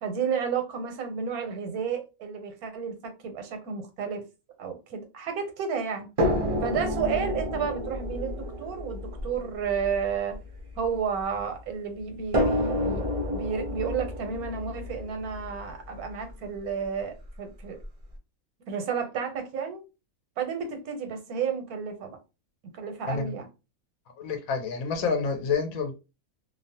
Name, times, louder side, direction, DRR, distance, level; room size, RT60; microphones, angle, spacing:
voice 1, 0.0-4.2 4.6-6.1 6.6-10.4 10.8-17.8 18.7-19.8 20.4-22.2 22.7-23.5, right 6 dB, 85° right, 1.2 m, -32 dB
sound 1, 6.2-11.4 12.3-16.3 17.3-17.4 17.8-17.9, left 1 dB, 60° right, 0.3 m, -30 dB
voice 2, 24.2-25.9, left 5 dB, 75° left, 1.0 m, -28 dB
2.7 x 2.0 x 2.6 m
omnidirectional pair, 1.5 m